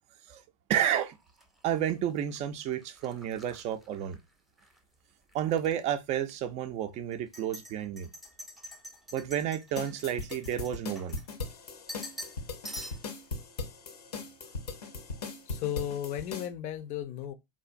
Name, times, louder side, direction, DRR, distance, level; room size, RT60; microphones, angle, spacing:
voice 1, 0.7-1.1 1.6-4.2 5.3-8.1 9.1-11.2, right 10 dB, 35° right, 0.4 m, -31 dB
sound 1, 0.8-4.8 5.1-5.8 6.2-6.3 7.1-11.5 11.9-12.4 12.6-13.2, equal, ahead, 0.7 m, -47 dB
sound 2, 9.8-16.5, left 4 dB, 75° left, 0.7 m, -39 dB
voice 2, 15.5-17.3, left 11 dB, 40° left, 0.5 m, -35 dB
3.6 x 2.5 x 2.4 m
figure-of-eight pair, 85°, 20 cm